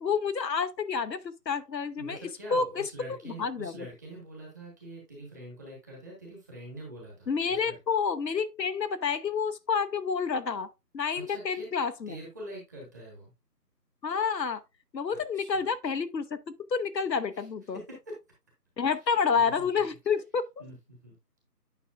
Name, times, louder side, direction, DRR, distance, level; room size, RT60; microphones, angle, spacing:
voice 1, 0.0-2.2 2.5-2.9 3.2-3.9 7.3-10.7 10.9-12.2 14.0-14.6 14.9-16.4 16.7-17.8 18.8-20.5, left 5 dB, 80° left, 0.9 m, -29 dB
voice 2, 2.0-7.8 11.3-11.7 12.1-13.3 15.1-15.7 17.3-17.5 17.7-18.1 18.9-19.7 20.6-21.1, right 1 dB, 10° right, 1.3 m, -45 dB
9.2 x 5.7 x 2.5 m
figure-of-eight pair, 160°, 50 cm